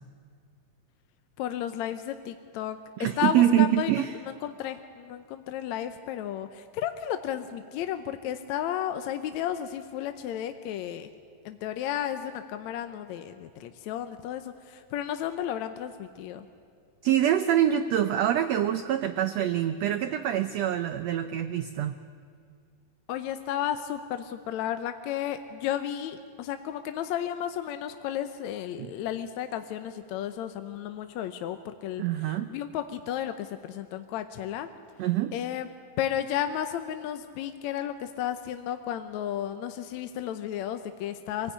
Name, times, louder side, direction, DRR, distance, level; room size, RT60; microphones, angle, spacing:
voice 1, 1.4-2.8 3.2-11.1 11.5-16.5 23.1-32.0 32.5-34.7 35.3-35.7 36.0-41.5, left 10 dB, 70° left, 9 dB, 1.8 m, -33 dB
voice 2, 3.0-4.1 17.0-22.0 28.8-28.9 32.0-32.5 35.0-35.3, right 11 dB, 80° right, 10 dB, 1.5 m, -25 dB
25.5 x 17.0 x 9.9 m, 2.3 s
omnidirectional pair, 3.9 m